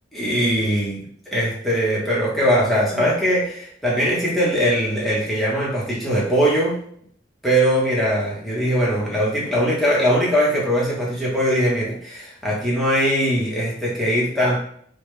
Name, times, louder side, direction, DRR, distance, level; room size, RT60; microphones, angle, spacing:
voice 1, 0.1-1.0 1.3-6.8 7.4-14.6, equal, ahead, -7 dB, 1.1 m, -21 dB
3.7 x 2.3 x 3.2 m, 0.63 s
head